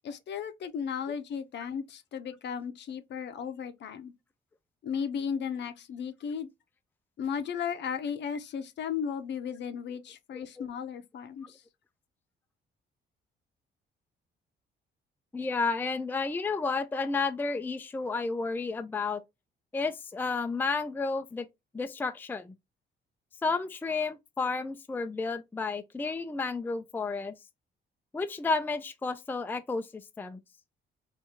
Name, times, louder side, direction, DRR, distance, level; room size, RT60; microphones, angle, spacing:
voice 1, 0.0-4.1 4.8-6.5 7.2-11.5, left 7 dB, 65° left, 0.7 m, -35 dB
voice 2, 15.3-19.2 19.7-21.5 21.7-22.5 23.4-27.3 28.1-30.4, left 4 dB, 10° left, 0.4 m, -31 dB
3.5 x 2.6 x 2.7 m
cardioid pair, 90°, 20 cm